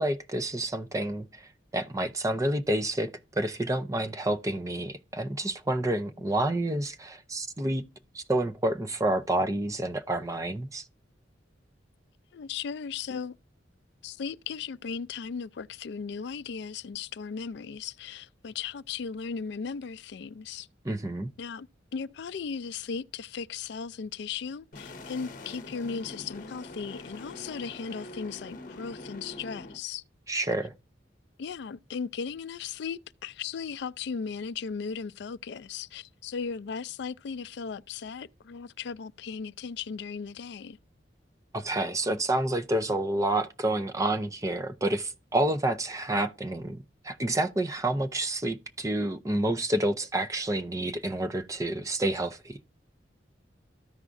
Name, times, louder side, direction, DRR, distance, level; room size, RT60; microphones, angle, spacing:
voice 1, 0.0-1.5 1.7-3.1 3.4-7.8 8.1-10.8 20.8-21.3 30.3-30.7 41.5-46.8 47.0-52.6, right 1 dB, 15° right, 0.6 m, -29 dB
voice 2, 12.3-13.4 14.0-20.7 21.4-30.0 31.4-40.8, left 6 dB, 65° left, 0.4 m, -37 dB
sound 1, 24.7-29.8, left 2 dB, 45° left, 0.9 m, -44 dB
14.0 x 4.8 x 2.5 m
head